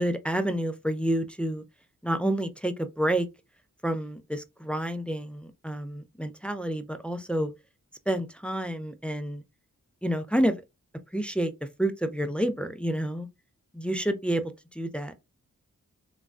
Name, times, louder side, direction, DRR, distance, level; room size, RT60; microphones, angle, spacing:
voice 1, 0.0-1.6 2.0-3.3 3.8-7.5 8.1-9.4 10.0-10.6 11.1-13.3 13.7-15.2, right 1 dB, 5° left, 0.4 m, -29 dB
3.0 x 2.3 x 2.5 m
cardioid pair, 60°, 34 cm